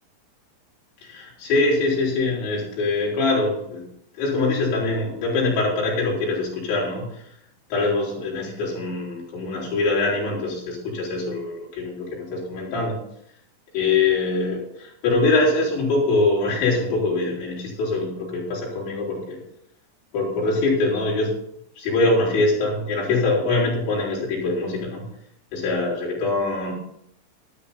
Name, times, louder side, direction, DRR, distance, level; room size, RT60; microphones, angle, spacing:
voice 1, 1.0-3.9 4.2-7.2 7.7-13.0 13.7-19.4 20.1-21.3 21.8-25.1 25.5-26.7, left 3 dB, 85° left, -4 dB, 6.6 m, -23 dB
12.5 x 11.5 x 4.2 m, 0.74 s
omnidirectional pair, 5.1 m